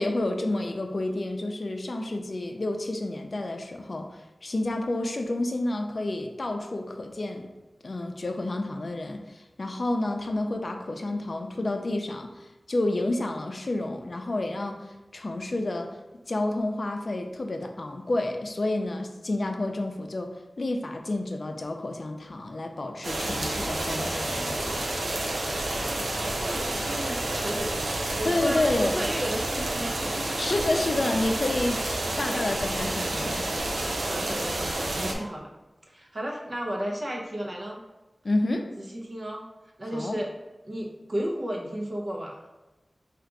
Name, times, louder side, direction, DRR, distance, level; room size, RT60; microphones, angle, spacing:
voice 1, 0.0-4.1 4.4-7.5 7.8-15.9 16.3-24.9 28.2-29.0 30.4-31.8 32.2-33.4 38.2-38.7 39.9-40.2, left 2 dB, 60° left, 4 dB, 0.5 m, -30 dB
sound 1, 23.0-35.1, right 2 dB, 90° right, 0.6 m, -29 dB
voice 2, 25.7-27.9 28.2-30.4 34.1-35.5 35.9-37.8 38.8-39.5 39.8-40.3 40.6-42.4, equal, 50° right, -1 dB, 0.8 m, -34 dB
3.7 x 2.5 x 4.5 m, 1.1 s
wide cardioid pair, 70°, 0 cm